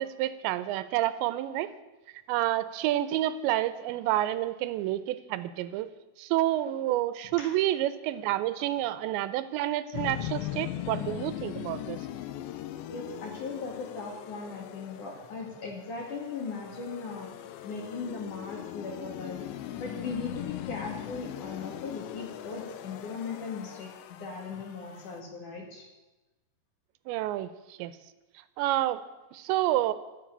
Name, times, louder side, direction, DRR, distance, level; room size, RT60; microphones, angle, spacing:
voice 1, 0.0-1.7 2.3-5.9 6.2-12.0 27.1-27.9 28.6-29.0 29.3-29.9, right 14 dB, 85° right, 14 dB, 3.0 m, -29 dB
sound 1, 9.9-25.2, left 12 dB, 85° left, 3.0 m, -40 dB
voice 2, 12.9-17.3 17.6-19.4 19.8-25.9, left 4 dB, 50° left, 0 dB, 3.1 m, -38 dB
14.5 x 7.5 x 9.9 m, 1.1 s
omnidirectional pair, 5.0 m